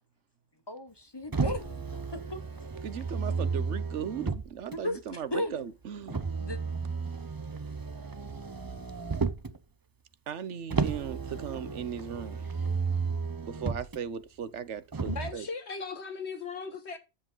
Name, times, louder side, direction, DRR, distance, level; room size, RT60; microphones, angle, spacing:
voice 1, 0.7-1.8 2.3-2.4 4.7-5.7 6.4-6.6, left 1 dB, 25° left, 1.0 m, -35 dB
Motor vehicle (road), 1.3-4.8 6.1-9.6 10.7-14.0 14.9-15.3, right 4 dB, 25° right, 0.6 m, -33 dB
voice 2, 2.8-6.2 10.3-12.5 13.5-15.4, right 8 dB, 80° right, 1.2 m, -37 dB
voice 3, 15.1-17.0, left 4 dB, 70° left, 1.9 m, -37 dB
9.9 x 7.7 x 5.5 m
omnidirectional pair, 1.2 m